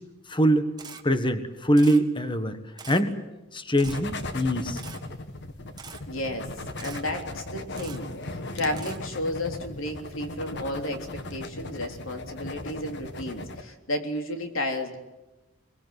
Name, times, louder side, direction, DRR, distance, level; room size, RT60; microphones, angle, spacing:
voice 1, 0.3-0.7 1.0-2.6 2.9-3.2 3.5-4.8, equal, 25° left, 9 dB, 1.5 m, -23 dB
Camera, 0.8-1.0 1.8-2.0 2.8-3.0 3.8-4.0 4.8-5.0 5.8-6.0 6.8-7.0 7.8-8.0 8.8-9.0, right 6 dB, 20° right, 1.8 m, -42 dB
sound 1, 3.8-13.6, left 2 dB, 55° left, 1.6 m, -37 dB
voice 2, 6.1-6.5 6.8-15.0, left 1 dB, 75° left, 5 dB, 3.5 m, -32 dB
23.0 x 22.0 x 9.6 m, 1.0 s
head